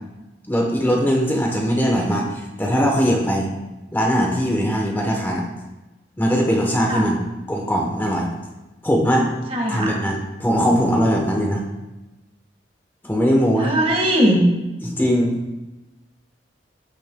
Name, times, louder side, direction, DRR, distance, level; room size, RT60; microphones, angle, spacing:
voice 1, 0.5-3.5 3.9-5.4 6.2-8.3 8.8-9.3 9.7-11.6 13.0-13.7 14.8-15.6, equal, 10° left, 0 dB, 0.9 m, -20 dB
voice 2, 9.5-10.0 13.6-14.4, equal, 30° right, 1 dB, 1.5 m, -19 dB
14.5 x 6.4 x 2.2 m, 1.1 s
head